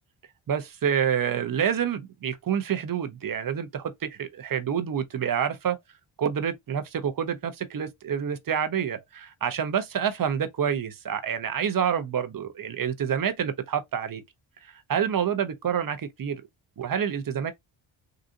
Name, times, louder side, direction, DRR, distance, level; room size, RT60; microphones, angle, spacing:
voice 1, 0.5-5.8 6.2-14.2 14.6-16.4 16.8-17.5, right 8 dB, 45° right, 0.7 m, -28 dB
3.8 x 2.4 x 2.6 m
cardioid pair, 70°, 50 cm